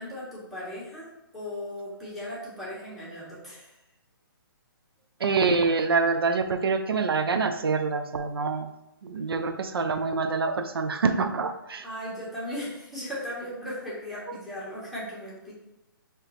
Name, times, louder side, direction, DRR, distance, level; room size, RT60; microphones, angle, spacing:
voice 1, 0.0-3.8 11.8-15.5, left 1 dB, ahead, -9 dB, 1.2 m, -37 dB
voice 2, 5.2-8.7 9.0-11.8, right 4 dB, 90° right, 7 dB, 0.4 m, -26 dB
4.8 x 3.0 x 3.0 m, 0.90 s
hypercardioid pair, 150°, 12 cm